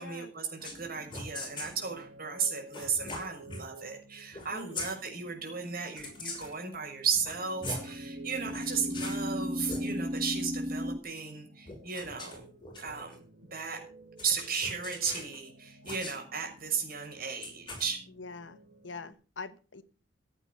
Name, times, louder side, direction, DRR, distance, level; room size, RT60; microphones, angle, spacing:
voice 1, 0.0-12.5 12.8-13.2 13.5-13.8 14.2-18.0, right 6 dB, 55° right, 3 dB, 6.4 m, -35 dB
sound 1, 0.6-0.8 1.1-1.8 2.7-3.6 4.3-4.5 4.7-4.9 6.0-6.6 7.1-7.9 8.5-9.2 9.6-9.8 11.7-13.2 14.2-15.4 15.8-16.2 17.4-17.9, left 2 dB, 25° left, 6.0 m, -41 dB
sound 2, 0.6-19.1, right 3 dB, 80° right, 6.1 m, -54 dB
sound 3, 0.7-1.4 7.4-11.0, equal, 30° right, 1.0 m, -35 dB
voice 2, 4.5-4.9 18.2-18.6 18.8-19.8, left 4 dB, 75° left, 14 dB, 1.3 m, -43 dB
16.0 x 9.1 x 6.8 m, 0.38 s
head